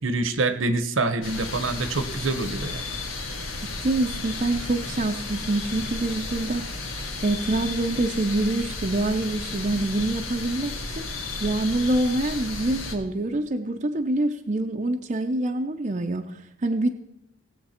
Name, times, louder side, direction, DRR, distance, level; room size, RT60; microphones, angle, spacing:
voice 1, 0.0-2.8, right 3 dB, 70° right, 12 dB, 0.9 m, -26 dB
sound 1, 1.2-12.9, left 3 dB, 85° left, 1.7 m, -33 dB
voice 2, 3.6-6.7 7.2-11.1 11.4-16.2 16.6-16.9, right 2 dB, 35° right, 4 dB, 0.6 m, -26 dB
18.5 x 7.5 x 4.4 m, 0.87 s
head